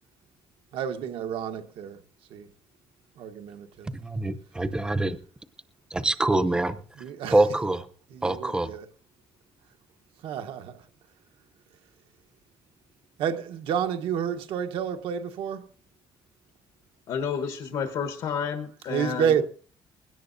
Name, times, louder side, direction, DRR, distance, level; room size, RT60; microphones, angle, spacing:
voice 1, 0.7-2.0 2.3-2.5 3.2-3.9 7.0-7.5 8.1-8.9 10.2-10.9 13.2-15.7 18.9-19.4, right 8 dB, 75° right, 1.2 m, -30 dB
voice 2, 3.9-5.2 5.9-6.8 7.3-7.8 8.2-8.7, right 2 dB, 10° right, 0.7 m, -24 dB
voice 3, 17.1-19.4, left 7 dB, 70° left, 1.2 m, -30 dB
21.0 x 17.0 x 2.6 m
cardioid pair, 175°, 9 cm